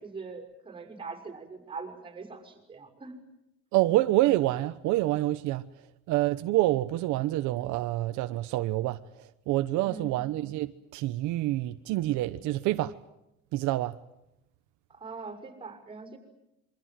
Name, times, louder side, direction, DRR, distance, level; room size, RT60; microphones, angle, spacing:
voice 1, 0.0-3.2 9.8-10.2 14.9-16.2, right 4 dB, 15° right, 5.8 m, -42 dB
voice 2, 3.7-5.7 6.1-12.9 13.5-14.0, right 16 dB, 80° right, 1.1 m, -27 dB
27.0 x 25.0 x 7.6 m
cardioid pair, 155°, 29 cm